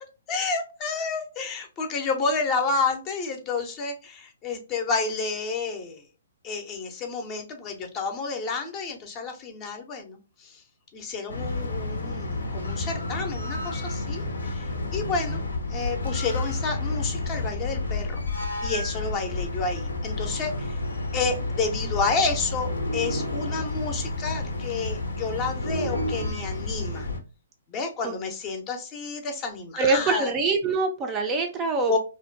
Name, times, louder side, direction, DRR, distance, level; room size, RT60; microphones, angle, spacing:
voice 1, 0.3-6.0 6.4-10.5 10.9-15.4 15.7-18.2 18.6-20.7 21.1-27.1 27.7-30.3 31.9-32.0, left 4 dB, 25° left, 5 dB, 0.5 m, -30 dB
sound 1, 11.3-27.2, left 2 dB, 80° left, 0.6 m, -30 dB
voice 2, 29.8-31.9, right 4 dB, 20° right, 4 dB, 0.4 m, -24 dB
2.5 x 2.1 x 2.5 m, 0.32 s
figure-of-eight pair, 130°, 0 cm